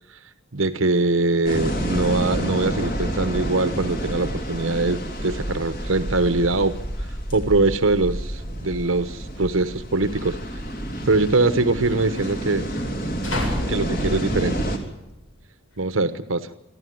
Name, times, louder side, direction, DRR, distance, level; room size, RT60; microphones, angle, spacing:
voice 1, 0.5-6.8 7.3-10.4 11.0-12.7 13.7-14.7 15.8-16.5, right 2 dB, 85° right, 11 dB, 1.1 m, -22 dB
sound 1, 1.5-14.8, equal, 45° left, 3.5 m, -29 dB
sound 2, 5.8-15.9, left 1 dB, 75° left, 7.5 m, -37 dB
27.5 x 13.0 x 9.4 m, 0.94 s
head